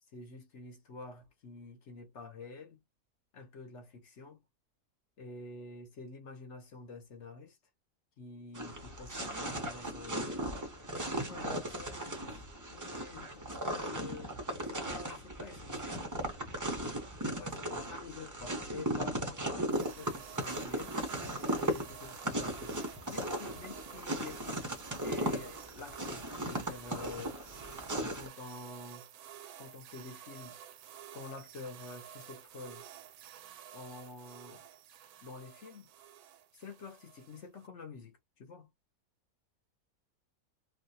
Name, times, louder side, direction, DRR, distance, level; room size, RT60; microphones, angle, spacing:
voice 1, 0.1-2.8 3.3-4.4 5.2-7.6 8.2-10.5 11.1-12.4 12.7-14.3 14.7-16.0 17.2-21.0 21.6-24.7 25.0-27.4 27.9-29.1 29.6-30.6 31.1-32.9 33.7-34.6 35.2-35.9 36.5-38.7, left 4 dB, 55° left, 1.1 m, -48 dB
sound 1, 8.5-28.3, right 1 dB, 25° right, 0.4 m, -37 dB
sound 2, 19.7-37.7, right 10 dB, 75° right, 1.0 m, -51 dB
3.2 x 2.4 x 2.7 m
omnidirectional pair, 1.6 m